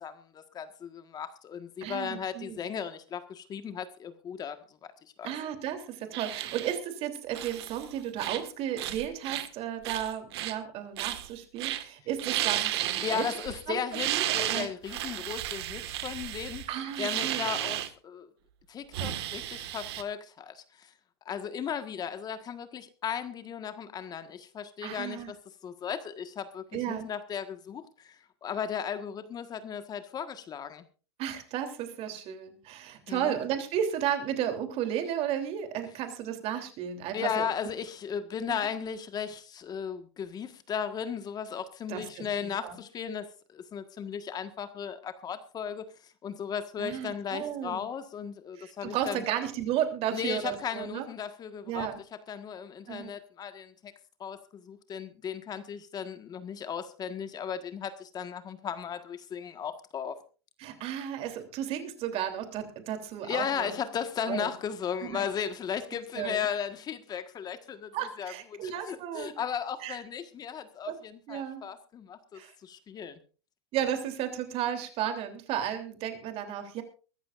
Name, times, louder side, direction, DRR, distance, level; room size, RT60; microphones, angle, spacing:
voice 1, 0.0-4.6 5.2-5.3 13.0-16.7 17.0-18.3 18.7-20.9 21.2-25.4 25.6-30.8 33.1-33.4 37.1-49.2 50.1-51.9 52.3-53.9 54.2-60.2 63.2-67.9 68.2-68.3 68.6-73.2, left 7 dB, 30° left, 9 dB, 1.6 m, -36 dB
voice 2, 1.8-2.6 5.2-13.2 13.7-14.7 16.7-17.4 24.8-25.3 26.7-27.1 31.2-37.5 38.5-38.7 41.9-42.8 46.8-47.8 48.5-51.1 51.7-52.0 52.9-53.1 60.6-63.7 64.3-64.5 65.0-65.2 66.1-66.5 67.9-69.3 69.8-70.0 70.8-71.0 71.3-71.6 72.3-72.5 73.7-76.8, right 10 dB, 45° right, 6 dB, 3.3 m, -34 dB
sound 1, 6.1-6.8 7.3-7.8 8.2-8.5 8.8-9.5 9.8-10.5 11.0-11.3 11.6-11.8 12.2-13.6 13.9-17.9 18.9-20.0, right 13 dB, 70° right, 1.7 m, -33 dB
23.5 x 14.0 x 2.6 m, 0.36 s
hypercardioid pair, 115°, 14 cm